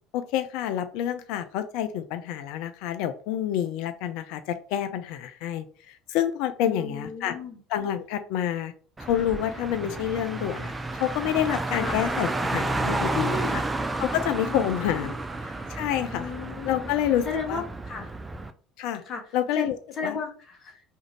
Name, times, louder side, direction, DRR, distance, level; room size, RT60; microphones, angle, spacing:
voice 1, 0.1-7.3 7.7-8.7 9.0-13.6 14.0-15.1 15.7-16.3 16.6-17.6 18.8-19.0 19.3-19.8 20.0-20.2, left 10 dB, 60° left, 10 dB, 0.3 m, -28 dB
voice 2, 6.6-7.6 11.7-12.0 13.1-13.6 14.5-15.1 16.1-16.9 17.2-18.1 19.1-19.2 19.5-19.7 19.9-20.8, left 4 dB, 40° left, 3 dB, 0.9 m, -34 dB
Car, 9.0-18.5, right 2 dB, 15° right, 0.4 m, -31 dB
2.5 x 2.5 x 3.0 m, 0.42 s
figure-of-eight pair, 65°, 0 cm